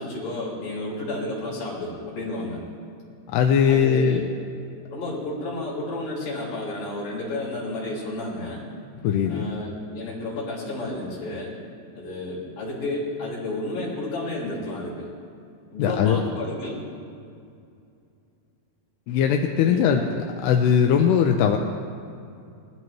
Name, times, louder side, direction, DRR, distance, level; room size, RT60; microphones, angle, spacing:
voice 1, 0.0-2.6 3.7-4.2 4.9-8.7 9.3-11.5 12.0-15.1 15.7-16.8 19.6-20.0, left 2 dB, 55° left, -5 dB, 5.3 m, -31 dB
voice 2, 3.3-4.2 9.0-9.4 15.8-16.2 19.1-20.0 20.4-21.6, left 8 dB, 85° left, 3 dB, 2.7 m, -19 dB
20.5 x 13.5 x 3.1 m, 2.4 s
omnidirectional pair, 4.7 m